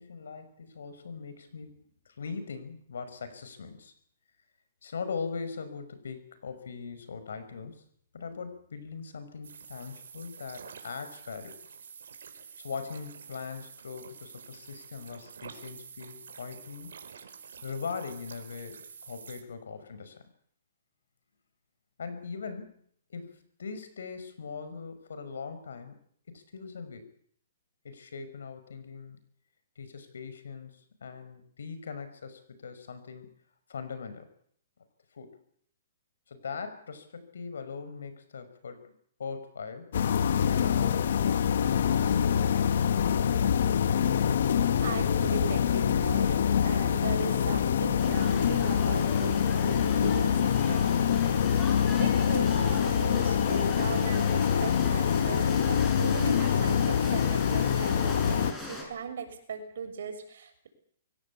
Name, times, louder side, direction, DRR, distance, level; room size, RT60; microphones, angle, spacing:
voice 1, 0.0-1.8 2.1-3.9 4.8-7.8 8.1-11.6 12.6-16.9 17.6-20.2 22.0-22.8 23.1-26.0 26.3-27.1 27.8-29.2 29.8-33.3 33.7-34.3 35.1-35.4 36.3-38.9 39.2-39.9 40.5-41.8, left 5 dB, 85° left, 11 dB, 5.8 m, -40 dB
sound 1, 9.4-19.4, right 6 dB, 85° right, 4.4 m, -48 dB
sound 2, 39.9-58.5, left 8 dB, 65° left, 1.4 m, -25 dB
voice 2, 44.8-51.0 52.0-60.7, right 6 dB, 70° right, 6 dB, 6.6 m, -39 dB
sound 3, 48.0-58.8, left 2 dB, 10° left, 6.3 m, -40 dB
25.0 x 17.0 x 8.5 m, 0.64 s
hypercardioid pair, 160°, 0 cm